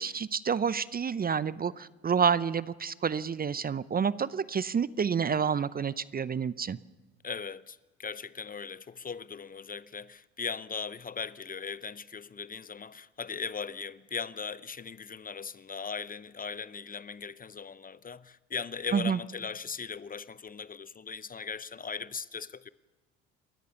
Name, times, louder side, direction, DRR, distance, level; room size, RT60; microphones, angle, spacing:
voice 1, 0.0-6.8 18.9-19.2, right 7 dB, 25° right, 0.6 m, -29 dB
voice 2, 7.2-22.7, left 6 dB, 25° left, 0.7 m, -39 dB
29.5 x 13.5 x 7.0 m
hypercardioid pair, 60°, 33 cm